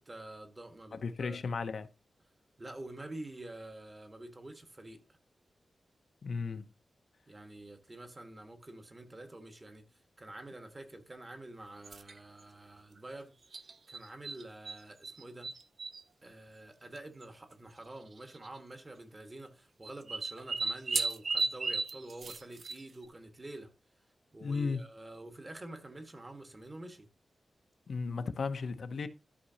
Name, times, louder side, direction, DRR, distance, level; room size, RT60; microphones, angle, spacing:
voice 1, 0.0-1.4 2.6-5.0 7.3-9.8 10.2-13.3 13.9-15.5 16.2-23.7 24.3-27.1, right 1 dB, 25° right, 1.6 m, -47 dB
voice 2, 0.9-1.9 6.2-6.6 24.4-24.8 27.9-29.1, left 4 dB, 60° left, 0.7 m, -35 dB
sound 1, 11.8-12.2 13.5-14.8 15.0-16.0 17.0-17.1 17.2-17.3 18.3-18.6 19.8-23.0, right 3 dB, 50° right, 0.6 m, -35 dB
13.0 x 5.9 x 2.9 m
wide cardioid pair, 135°, 0 cm